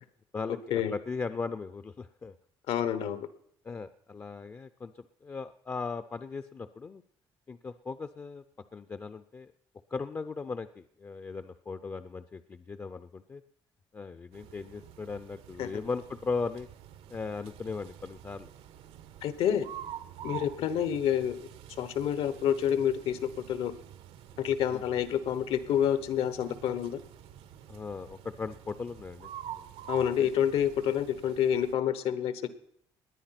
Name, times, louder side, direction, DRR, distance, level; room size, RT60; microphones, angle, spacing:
voice 1, 0.3-2.3 3.6-7.0 7.5-8.4 8.7-9.5 9.9-13.4 13.9-16.7 17.1-18.5 20.3-20.4 24.7-24.8 27.7-29.3 29.5-29.6 29.9-30.3, left 4 dB, 25° left, 10 dB, 0.5 m, -38 dB
voice 2, 2.7-3.3 15.6-15.7 19.2-19.7 20.2-21.4 21.7-23.7 24.4-27.0 29.9-32.5, left 9 dB, 75° left, 14 dB, 1.2 m, -28 dB
sound 1, 14.3-31.8, right 11 dB, 85° right, 1.3 m, -47 dB
19.0 x 9.9 x 5.9 m, 0.69 s
cardioid pair, 135°, 10 cm